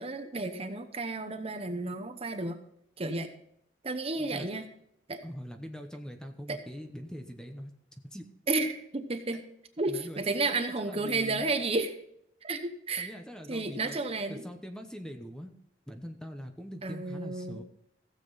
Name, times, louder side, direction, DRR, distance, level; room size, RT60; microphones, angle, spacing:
voice 1, 0.0-2.6 3.0-3.3 3.8-4.6 5.1-5.2 6.5-6.6 8.5-9.4 9.8-11.9 12.4-13.1 13.5-14.4 16.8-17.6, right 3 dB, 35° right, 8 dB, 0.9 m, -32 dB
voice 2, 5.2-7.7 8.1-8.2 9.9-11.5 13.0-14.0 14.3-15.5 15.9-17.6, equal, 5° left, 5 dB, 0.9 m, -42 dB
16.0 x 7.5 x 4.0 m, 0.74 s
head